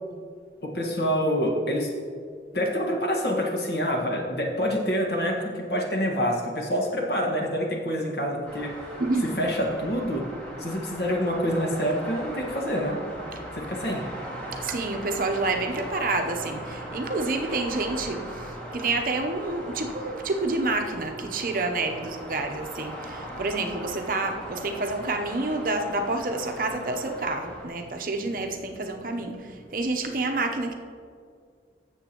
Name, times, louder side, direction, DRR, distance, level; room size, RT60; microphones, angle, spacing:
voice 1, 0.6-1.9 2.5-8.9 9.2-10.3 10.6-13.0 13.5-14.0, equal, 65° left, -1 dB, 1.6 m, -27 dB
sound 1, 8.4-27.7, equal, 5° left, 2.0 m, -39 dB
voice 2, 9.0-9.4 14.6-30.7, right 2 dB, 50° right, 4 dB, 0.7 m, -28 dB
16.0 x 7.1 x 3.0 m, 2.2 s
head